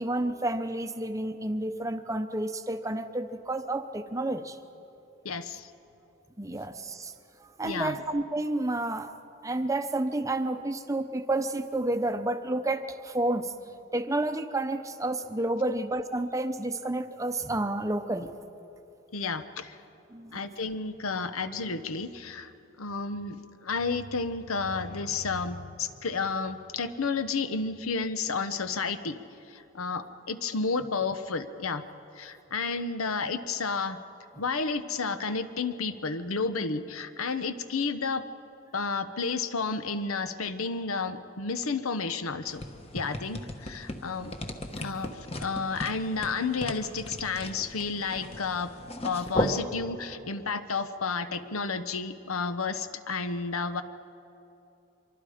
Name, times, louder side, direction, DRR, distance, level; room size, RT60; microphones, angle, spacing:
voice 1, 0.0-4.6 6.4-7.1 7.6-9.1 9.4-13.5 13.9-18.3 20.1-20.4, right 2 dB, 15° right, 9 dB, 0.7 m, -30 dB
voice 2, 5.2-5.7 7.6-8.0 15.7-15.8 19.1-19.8 20.3-22.5 22.8-23.4 23.6-29.2 29.5-31.8 32.2-34.0 34.4-38.2 38.7-42.6 42.9-44.3 44.8-48.7 49.0-53.8, left 4 dB, 85° left, 11 dB, 1.0 m, -31 dB
sound 1, 42.5-49.6, left 1 dB, 30° left, 1.1 m, -36 dB
25.0 x 23.5 x 5.0 m, 2.9 s
head